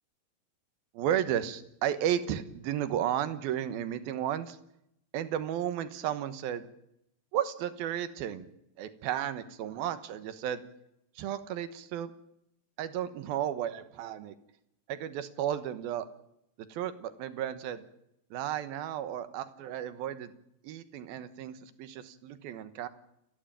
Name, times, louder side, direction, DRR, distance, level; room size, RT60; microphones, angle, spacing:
voice 1, 0.9-4.6 5.1-6.7 7.3-8.5 8.8-10.6 11.2-12.1 12.8-14.3 14.9-16.1 16.6-17.8 18.3-20.3 20.6-22.9, right 10 dB, 85° right, 12 dB, 3.1 m, -33 dB
29.5 x 11.5 x 8.9 m, 0.78 s
omnidirectional pair, 4.3 m